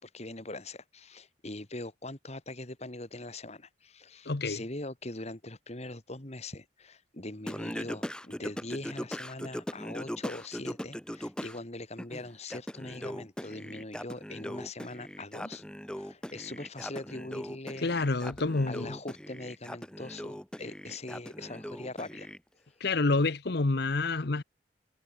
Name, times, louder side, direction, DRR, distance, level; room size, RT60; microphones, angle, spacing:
voice 1, 0.0-17.9 18.7-22.3, left 2 dB, 35° left, 2.5 m, -42 dB
voice 2, 4.3-4.6 17.8-19.0 22.8-24.4, left 3 dB, 60° left, 0.9 m, -28 dB
Singing, 7.5-11.6 12.0-22.4, equal, 5° left, 1.1 m, -40 dB
head